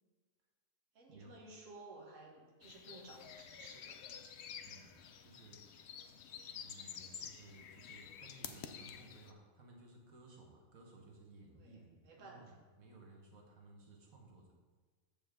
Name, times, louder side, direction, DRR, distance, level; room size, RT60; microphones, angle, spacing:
voice 1, 0.9-4.0 11.6-12.6, right 2 dB, 65° right, -2 dB, 1.7 m, -55 dB
sound 1, 2.6-9.3, left 7 dB, 65° left, 0.8 m, -50 dB
voice 2, 4.6-5.6 6.0-6.1 6.6-14.6, right 2 dB, 85° right, 0 dB, 1.7 m, -58 dB
7.9 x 7.0 x 3.7 m, 1.4 s
omnidirectional pair, 1.4 m